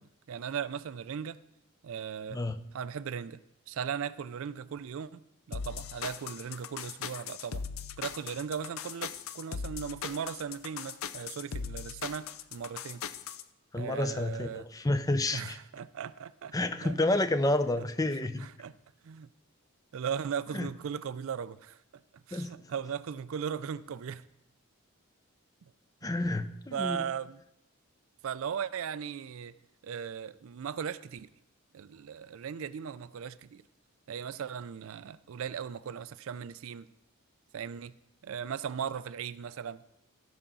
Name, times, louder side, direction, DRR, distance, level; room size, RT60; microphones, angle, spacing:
voice 1, 0.0-1.4 1.8-2.4 2.7-3.4 3.7-7.6 8.0-13.0 13.7-14.7 15.3-16.5 16.8-16.9 18.2-18.7 19.0-19.3 19.9-21.8 22.1-24.2 26.0-26.1 26.7-27.4 28.2-29.5 29.8-31.3 31.7-33.6 34.1-36.9 37.5-37.9 38.2-39.8, right 7 dB, 65° right, 0.4 m, -38 dB
sound 1, 5.5-13.4, left 7 dB, 70° left, 0.5 m, -39 dB
voice 2, 13.7-15.6 16.5-18.5 20.5-20.7 22.3-22.6 26.0-27.0, left 2 dB, 15° left, 0.4 m, -29 dB
16.5 x 5.8 x 3.8 m
head